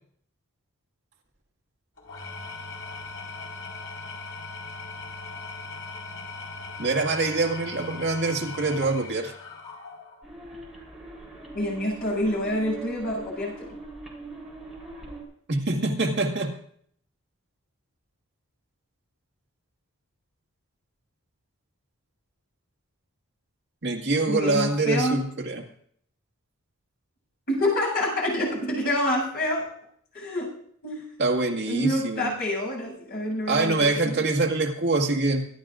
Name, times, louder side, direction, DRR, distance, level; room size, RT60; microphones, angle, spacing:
Engine / Tools, 2.0-10.3, left 3 dB, 70° left, 4.4 m, -39 dB
voice 1, 6.8-9.3 15.5-16.6 23.8-25.6 31.2-32.3 33.5-35.5, right 3 dB, 55° right, 1 dB, 1.9 m, -25 dB
sound 1, 10.2-15.2, right 2 dB, ahead, 3.7 m, -41 dB
voice 2, 11.5-13.7 24.3-25.2 27.5-29.6 30.1-30.5 30.8-31.0 31.7-34.1, left 1 dB, 45° left, -2 dB, 7.3 m, -27 dB
25.0 x 12.0 x 2.5 m, 0.63 s
head